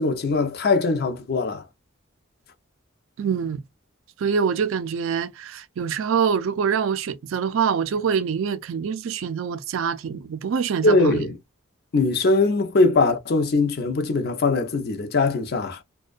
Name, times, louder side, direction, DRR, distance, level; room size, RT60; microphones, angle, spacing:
voice 1, 0.0-1.6 10.8-11.3 11.9-15.8, left 3 dB, 50° left, 0.5 m, -21 dB
voice 2, 3.2-3.6 4.2-11.3, right 6 dB, 65° right, 0.3 m, -25 dB
2.5 x 2.1 x 2.3 m
head